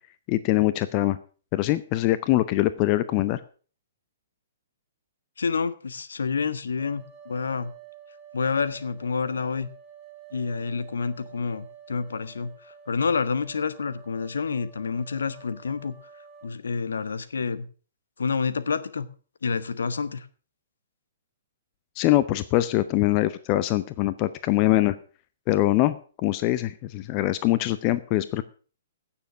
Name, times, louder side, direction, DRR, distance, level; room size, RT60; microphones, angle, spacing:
voice 1, 0.3-1.2 1.5-3.4 22.0-24.9 25.5-26.0 26.2-28.4, left 16 dB, 30° left, 14 dB, 0.6 m, -23 dB
voice 2, 5.4-7.7 8.3-9.7 10.3-15.9 16.4-17.7 18.2-19.1 19.4-20.3, left 5 dB, 65° left, 14 dB, 1.0 m, -28 dB
sound 1, 6.8-16.6, right 7 dB, 15° right, 2.5 m, -50 dB
16.0 x 7.2 x 5.8 m, 0.40 s
figure-of-eight pair, 115°, 0 cm